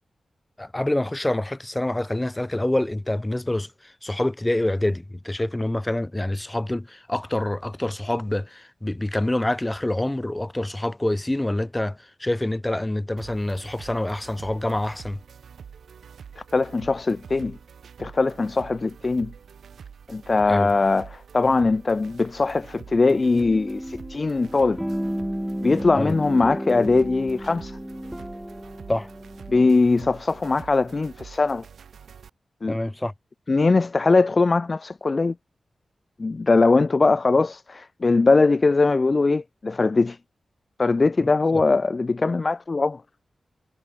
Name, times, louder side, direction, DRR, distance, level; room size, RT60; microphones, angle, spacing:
voice 1, 0.6-15.2 20.5-20.7 25.9-26.2 28.9-29.1 32.7-33.1 41.2-41.6, left 1 dB, 15° left, 2.0 m, -26 dB
sound 1, 13.2-32.3, right 7 dB, 85° right, 4.5 m, -46 dB
voice 2, 16.4-17.6 18.0-19.3 20.1-24.8 25.6-27.8 29.5-31.6 32.6-32.8 33.5-35.3 36.2-40.2 40.8-43.0, left 3 dB, 40° left, 0.5 m, -21 dB
sound 2, 23.0-29.7, equal, 5° right, 1.6 m, -33 dB
wide cardioid pair, 90°, 0 cm